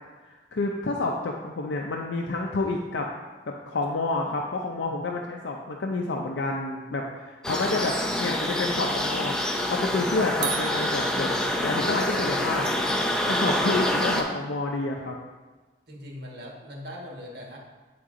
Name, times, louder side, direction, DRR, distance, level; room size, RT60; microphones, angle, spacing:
voice 1, 0.2-3.1 3.5-9.3 9.7-11.3 11.6-12.7 13.3-15.2, left 3 dB, 80° left, 0 dB, 0.5 m, -29 dB
sound 1, 7.4-14.2, left 1 dB, 5° left, 0.4 m, -26 dB
sound 2, 10.4-12.0, right 8 dB, 85° right, 0.5 m, -35 dB
voice 2, 15.9-17.6, left 1 dB, 60° right, -1 dB, 1.2 m, -40 dB
8.7 x 3.9 x 3.7 m, 1.3 s
head